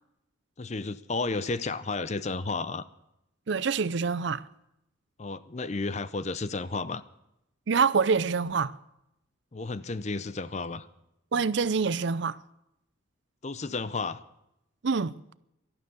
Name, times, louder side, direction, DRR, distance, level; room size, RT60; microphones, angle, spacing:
voice 1, 0.6-2.8 5.2-7.0 9.5-10.9 13.4-14.2, left 3 dB, 35° left, 0.6 m, -32 dB
voice 2, 3.5-4.4 7.7-8.7 11.3-12.4 14.8-15.1, right 5 dB, 60° right, 0.5 m, -26 dB
12.5 x 12.0 x 8.0 m
head